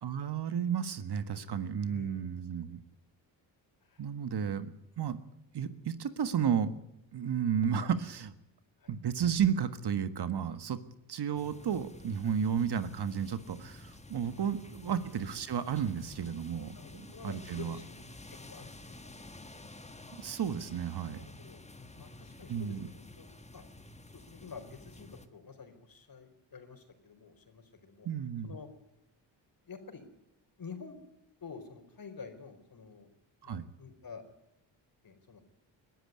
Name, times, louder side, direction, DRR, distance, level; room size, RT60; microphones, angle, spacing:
voice 1, 0.0-2.8 4.0-5.2 5.5-6.7 7.1-8.3 8.9-10.8 11.1-17.8 20.1-21.2 22.5-22.9 28.0-28.6 33.4-33.6, right 8 dB, 60° right, 11 dB, 1.6 m, -33 dB
voice 2, 1.3-2.3 3.8-4.0 8.8-8.9 14.2-14.5 14.9-15.0 16.7-18.1 18.5-19.1 21.1-23.3 23.5-23.6 24.1-28.1 28.4-28.7 29.6-30.0 30.6-31.0 31.4-33.1 33.4-34.2 35.0-35.4, left 5 dB, 50° left, 7 dB, 4.6 m, -49 dB
sound 1, 11.3-25.3, left 2 dB, 15° left, 1.7 m, -51 dB
21.5 x 12.5 x 9.6 m, 0.85 s
cardioid pair, 65°, 46 cm